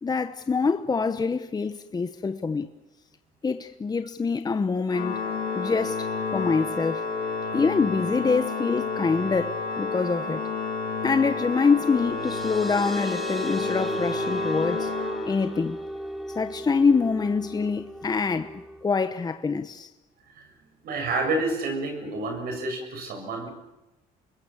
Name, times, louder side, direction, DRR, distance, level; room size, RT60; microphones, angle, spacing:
voice 1, 0.0-2.7 3.4-5.2 5.5-7.0 7.5-10.4 11.0-14.9 15.2-15.8 16.3-19.9, left 4 dB, 25° left, 1.0 m, -25 dB
Organ, 4.9-15.8, left 4 dB, 65° left, 6.6 m, -31 dB
sound 1, 11.7-18.8, right 1 dB, ahead, 3.0 m, -35 dB
voice 2, 20.8-23.5, right 2 dB, 65° right, 7.3 m, -29 dB
26.5 x 21.5 x 7.2 m
cardioid pair, 95°, 17 cm